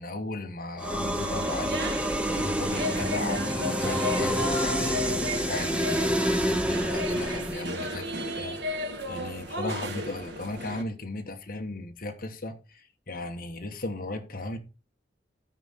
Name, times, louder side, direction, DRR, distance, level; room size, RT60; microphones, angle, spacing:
voice 1, 0.0-14.6, left 2 dB, 50° left, 1.2 m, -37 dB
sound 1, 0.8-7.7, equal, 5° right, 0.7 m, -28 dB
sound 2, 1.1-10.8, left 1 dB, 65° right, 1.6 m, -34 dB
13.0 x 4.8 x 4.1 m
head